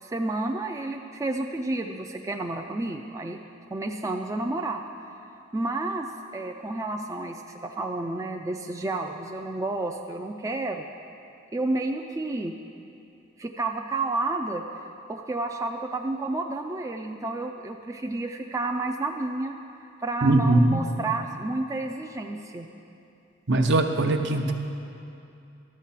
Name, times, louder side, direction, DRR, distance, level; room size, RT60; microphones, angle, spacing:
voice 1, 0.0-3.4 3.7-4.8 5.5-6.1 6.3-10.9 11.5-12.5 13.4-14.6 15.1-19.6 20.0-22.7, right 2 dB, 15° right, 3 dB, 0.4 m, -30 dB
voice 2, 20.2-20.9 23.5-24.5, right 2 dB, 60° right, 5 dB, 0.8 m, -21 dB
12.0 x 7.3 x 5.8 m, 2.7 s
head